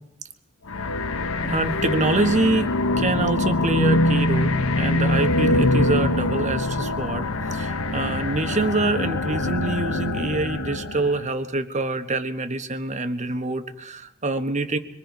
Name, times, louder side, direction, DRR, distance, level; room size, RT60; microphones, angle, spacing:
sound 1, 0.7-11.2, left 2 dB, 85° left, 1.0 m, -23 dB
voice 1, 1.4-14.8, right 2 dB, 35° right, 8 dB, 1.3 m, -26 dB
25.5 x 23.0 x 5.3 m, 0.82 s
head